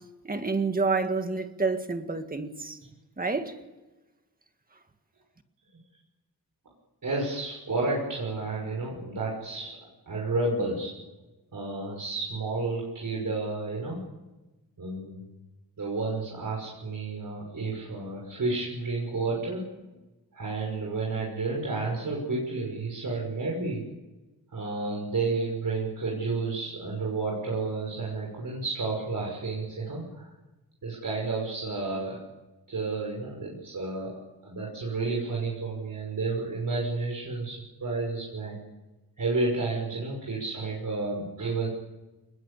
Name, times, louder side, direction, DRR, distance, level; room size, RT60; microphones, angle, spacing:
voice 1, 0.2-2.8 3.2-3.5, right 4 dB, 25° right, 1.9 m, -28 dB
voice 2, 7.0-9.8 10.1-10.9 11.5-14.0 14.8-15.3 15.8-19.7 20.3-23.9 24.5-30.3 30.8-32.2 32.7-38.6 39.2-41.7, right 3 dB, 60° right, 6.2 m, -31 dB
27.5 x 21.0 x 8.4 m
wide cardioid pair, 175°, 37 cm